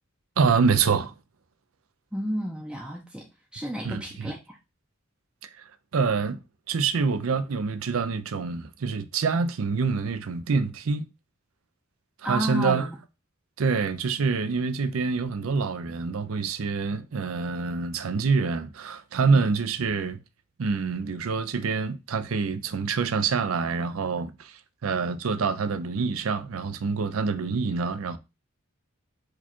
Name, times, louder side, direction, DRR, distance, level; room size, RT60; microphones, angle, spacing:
voice 1, 0.4-1.1 3.8-4.3 5.6-5.7 5.9-6.4 6.7-11.1 12.3-12.9 13.6-20.2 20.6-28.2, right 5 dB, 85° right, 0.5 m, -26 dB
voice 2, 2.1-3.3 3.5-4.6 12.2-12.8, equal, 5° right, 0.5 m, -31 dB
4.7 x 2.3 x 4.3 m
head